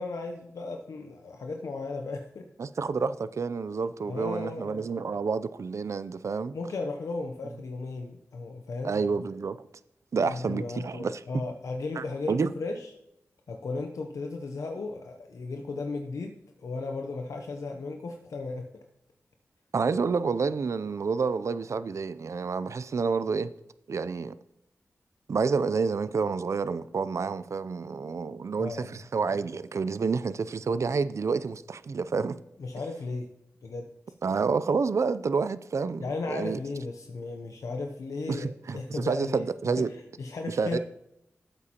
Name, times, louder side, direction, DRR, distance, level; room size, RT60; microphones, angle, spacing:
voice 1, 0.0-2.5 4.1-4.8 6.5-9.0 10.2-12.9 13.5-18.8 28.6-29.0 32.6-33.3 33.6-33.9 36.0-39.5 39.8-40.8, left 3 dB, 85° left, 0.7 m, -35 dB
voice 2, 2.6-6.5 8.8-9.6 10.1-11.2 12.0-12.5 19.7-23.5 23.9-24.3 25.3-32.4 34.2-36.6 38.3-39.9 40.5-40.8, right 5 dB, 65° right, 0.5 m, -29 dB
12.0 x 8.3 x 2.9 m
cardioid pair, 50°, 5 cm